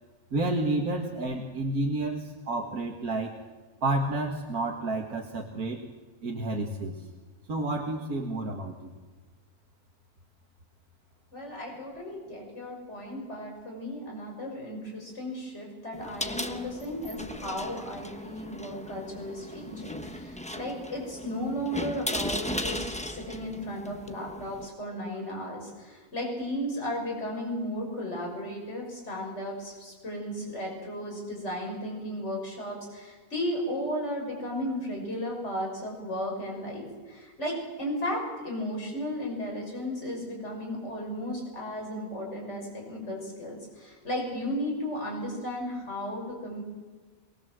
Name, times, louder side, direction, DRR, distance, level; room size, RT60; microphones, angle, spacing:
voice 1, 0.3-3.4 3.8-5.9 6.2-7.1 7.5-8.9, right 2 dB, 75° right, 1 dB, 2.3 m, -30 dB
voice 2, 11.3-46.6, equal, 50° left, -1 dB, 6.5 m, -35 dB
sound 1, 15.9-24.7, left 1 dB, 5° left, 1.0 m, -37 dB
23.0 x 21.5 x 7.7 m, 1.4 s
omnidirectional pair, 1.5 m